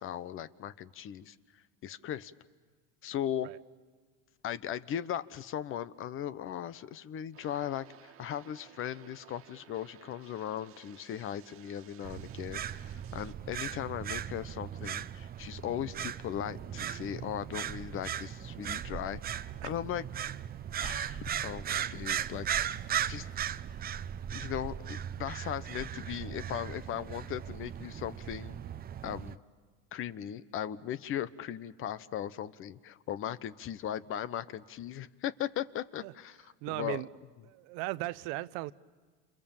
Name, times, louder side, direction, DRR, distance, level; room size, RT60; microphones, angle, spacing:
voice 1, 0.0-2.3 3.0-3.5 4.4-20.0 20.8-22.7 23.1-23.3 24.3-28.6 29.0-29.4 29.9-37.0, left 10 dB, 45° left, 1.1 m, -38 dB
sound 1, 7.3-13.3, right 10 dB, 50° right, 1.7 m, -57 dB
sound 2, 12.0-29.4, right 9 dB, 30° right, 0.8 m, -37 dB
voice 2, 36.6-37.1 37.5-38.7, right 19 dB, 70° right, 0.9 m, -37 dB
28.5 x 28.5 x 7.3 m
supercardioid pair, 115°, 30 cm